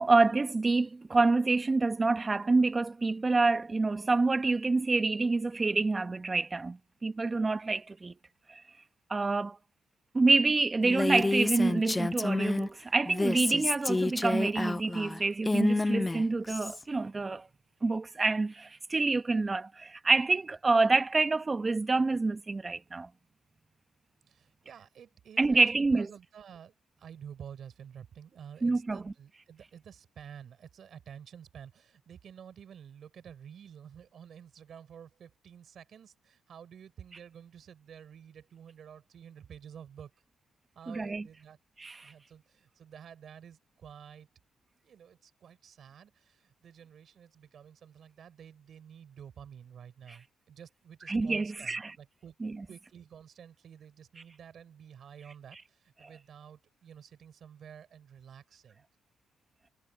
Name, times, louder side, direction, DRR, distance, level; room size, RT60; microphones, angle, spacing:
voice 1, 0.0-8.1 8.5-8.6 9.1-9.6 10.1-17.5 17.8-23.1 25.4-26.1 28.6-29.0 40.9-41.2 41.8-42.1 51.1-51.9 52.4-52.6, right 3 dB, 25° right, 1.6 m, -27 dB
Female speech woman speaking, 10.8-12.7 13.1-16.8, left 2 dB, 20° left, 0.3 m, -29 dB
voice 2, 24.3-40.1 40.7-41.6 42.0-44.3 44.8-52.3 52.7-58.8, right 8 dB, 60° right, 4.8 m, -50 dB
cardioid pair, 90°, 0 cm